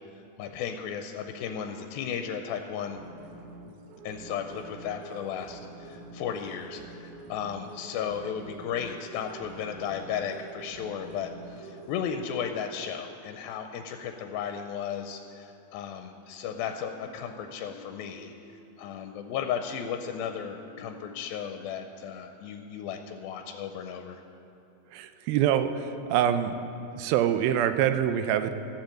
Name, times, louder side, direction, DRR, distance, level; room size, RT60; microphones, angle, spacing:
voice 1, 0.2-3.0 4.0-18.3 18.8-24.2, left 8 dB, 85° left, 6 dB, 2.4 m, -35 dB
sound 1, 2.9-12.0, right 2 dB, 75° right, 1.9 m, -46 dB
sound 2, 16.5-21.6, left 2 dB, 60° right, 3.9 m, -53 dB
voice 2, 24.9-26.5 26.9-28.5, right 10 dB, 90° right, 10 dB, 2.5 m, -25 dB
14.0 x 7.4 x 7.7 m, 2.7 s
omnidirectional pair, 4.2 m